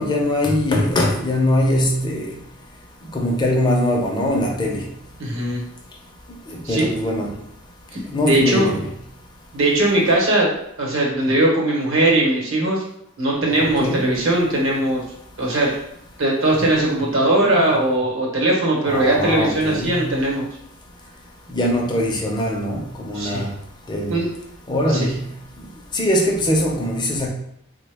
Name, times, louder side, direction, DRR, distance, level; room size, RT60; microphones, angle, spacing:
voice 1, 0.0-2.3 3.1-4.8 6.7-7.3 8.1-8.9 13.6-14.1 18.9-20.2 21.5-23.5 23.9-24.1 24.7-25.2 25.9-27.3, left 1 dB, 20° left, 0.4 m, -21 dB
voice 2, 5.2-5.6 6.6-6.9 7.9-8.0 8.3-8.7 9.5-10.5 10.8-12.8 13.2-15.0 15.4-15.8 16.2-20.4 23.1-23.5 24.1-24.3 24.8-25.0, right 1 dB, 65° right, 0.9 m, -19 dB
3.4 x 2.1 x 3.3 m
head